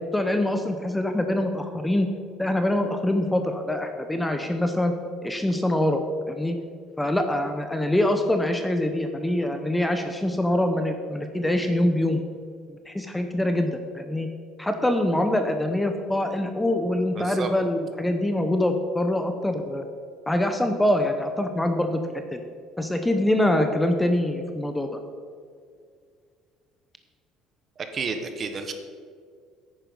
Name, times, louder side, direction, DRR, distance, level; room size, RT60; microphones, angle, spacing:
voice 1, 0.1-2.1 2.4-4.9 5.2-6.6 7.0-12.2 12.9-14.3 14.6-19.8 20.3-22.0 22.8-24.9, left 1 dB, 5° left, 6 dB, 0.8 m, -24 dB
voice 2, 17.1-17.5 27.8-28.7, right 5 dB, 35° right, 7 dB, 1.3 m, -31 dB
10.0 x 9.4 x 5.3 m, 2.1 s
cardioid pair, 125°, 0 cm